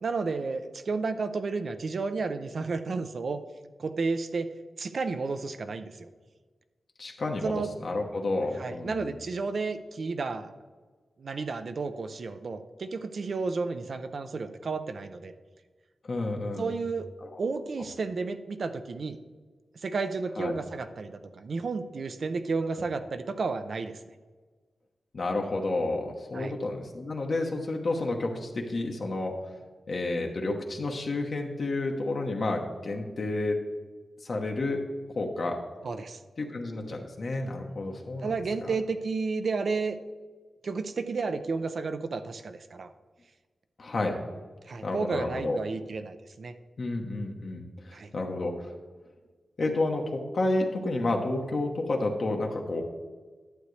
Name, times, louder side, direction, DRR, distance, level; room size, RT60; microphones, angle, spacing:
voice 1, 0.0-3.4 3.8-4.5 4.8-6.1 7.4-7.7 8.5-10.5 11.2-15.3 16.6-17.1 17.4-19.2 19.8-24.0 26.3-26.6 35.8-36.2 38.2-40.0 40.6-42.9 44.7-46.5 47.9-48.1, right 4 dB, 60° right, 9 dB, 0.5 m, -32 dB
voice 2, 7.0-9.1 16.1-16.8 17.2-17.3 20.4-20.5 25.1-29.3 29.9-33.6 34.2-34.8 35.2-35.6 36.4-38.3 38.7-38.8 43.8-44.1 44.8-45.6 46.8-48.7 49.6-52.8, left 2 dB, 55° left, 1 dB, 1.0 m, -30 dB
11.5 x 8.0 x 3.2 m, 1.4 s
wide cardioid pair, 115°, 0 cm